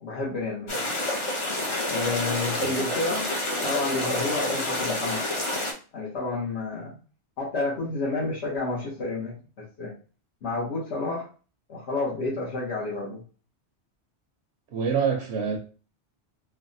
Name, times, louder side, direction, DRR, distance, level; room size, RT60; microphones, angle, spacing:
voice 1, 0.0-0.7 1.9-3.3 3.6-5.2 5.9-6.9 7.4-9.9 10.4-11.3 11.7-13.2, left 3 dB, 70° left, 1.2 m, -30 dB
sound 1, 0.7-5.7, left 1 dB, 35° left, 0.5 m, -28 dB
voice 2, 14.7-15.6, right 6 dB, 70° right, 0.8 m, -26 dB
3.3 x 2.1 x 2.5 m
omnidirectional pair, 1.2 m